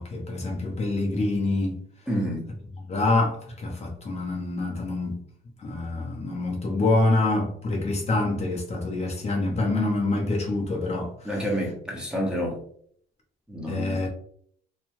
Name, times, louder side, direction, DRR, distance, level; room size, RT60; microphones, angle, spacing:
voice 1, 0.0-1.8 2.9-5.2 5.6-11.5 13.7-14.1, left 2 dB, 35° left, 0.8 m, -26 dB
voice 2, 2.1-2.4 11.2-12.6 13.5-14.1, equal, 5° right, 0.9 m, -28 dB
3.1 x 2.3 x 2.6 m
cardioid pair, 115°, 18 cm